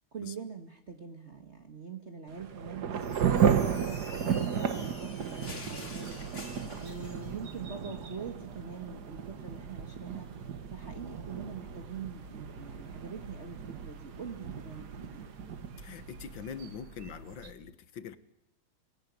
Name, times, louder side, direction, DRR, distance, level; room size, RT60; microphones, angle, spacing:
voice 1, 0.1-15.4, right 6 dB, 35° right, 5 dB, 1.7 m, -44 dB
Thunder / Rain, 2.3-16.7, right 7 dB, 55° right, 1.6 m, -34 dB
sound 1, 2.9-7.4, left 2 dB, 35° left, 3.6 m, -47 dB
sound 2, 6.0-17.5, right 4 dB, 80° right, 2.5 m, -49 dB
voice 2, 15.8-18.2, left 7 dB, 65° left, 13 dB, 1.9 m, -43 dB
23.0 x 17.5 x 9.4 m, 0.84 s
omnidirectional pair, 2.3 m